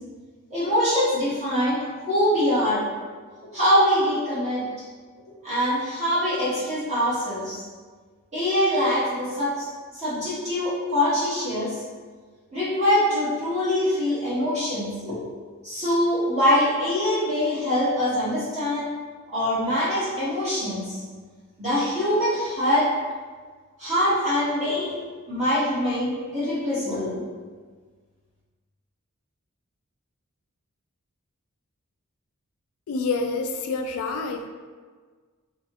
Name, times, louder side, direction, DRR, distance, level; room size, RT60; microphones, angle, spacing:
voice 1, 0.5-2.9 3.5-4.6 5.4-7.6 8.3-9.7 9.9-11.7 12.5-15.2 15.6-18.9 19.3-21.0 21.6-22.9 23.8-25.0 25.3-27.2, equal, 30° right, -12 dB, 1.2 m, -23 dB
voice 2, 32.9-34.5, left 3 dB, 75° left, 5 dB, 0.4 m, -27 dB
3.0 x 2.8 x 2.9 m, 1.5 s
head